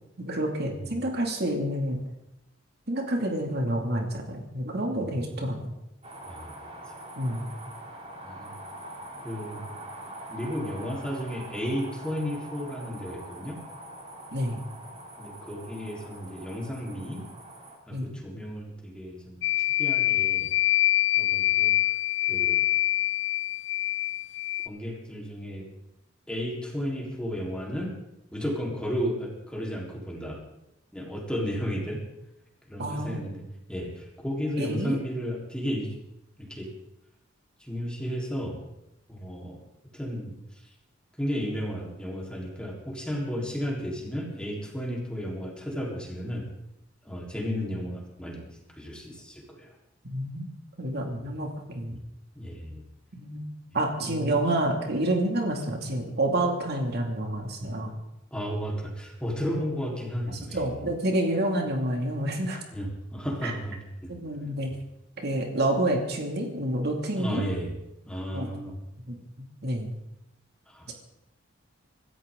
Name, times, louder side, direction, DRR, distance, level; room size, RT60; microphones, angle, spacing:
voice 1, 0.2-2.0 2.9-5.7 7.2-7.5 14.3-14.6 17.9-18.1 32.8-33.2 34.6-35.0 50.1-50.5 50.8-52.0 53.1-53.4 53.7-58.0 60.3-62.6 63.4-63.5 64.1-64.7 65.2-67.5 68.3-68.5 69.0-69.9 70.9-71.0, right 1 dB, 55° right, 2 dB, 2.5 m, -29 dB
sound 1, 6.0-17.8, right 1 dB, 30° right, 2.9 m, -43 dB
voice 2, 9.2-9.7 10.3-13.6 15.2-17.3 17.9-20.5 21.2-21.8 22.3-22.7 24.7-25.7 26.3-28.0 28.3-30.4 30.9-32.0 32.7-33.4 33.7-36.0 36.4-36.7 37.6-38.6 39.1-39.6 39.9-40.4 41.2-46.5 47.0-48.5 48.8-49.7 51.9-52.0 52.4-52.8 54.0-54.4 58.3-60.9 62.7-64.1 67.2-67.8 68.1-68.8 70.7-70.9, equal, 5° left, -2 dB, 3.9 m, -33 dB
sound 2, 19.4-24.7, left 16 dB, 65° left, 0.7 m, -25 dB
26.0 x 14.0 x 3.8 m, 0.86 s
head